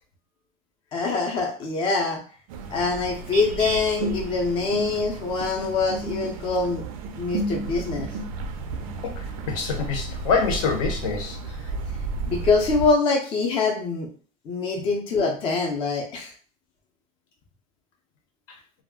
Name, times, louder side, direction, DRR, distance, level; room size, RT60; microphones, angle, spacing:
voice 1, 0.9-2.2 2.7-6.8 7.2-8.1 12.2-14.1 14.5-16.3, left 4 dB, 30° left, 0 dB, 0.5 m, -24 dB
sound 1, 2.5-12.9, right 3 dB, 85° right, 0.5 m, -32 dB
voice 2, 9.0-11.4, left 5 dB, 70° left, 3 dB, 0.8 m, -26 dB
2.3 x 2.1 x 3.5 m, 0.40 s
supercardioid pair, 160°, 18 cm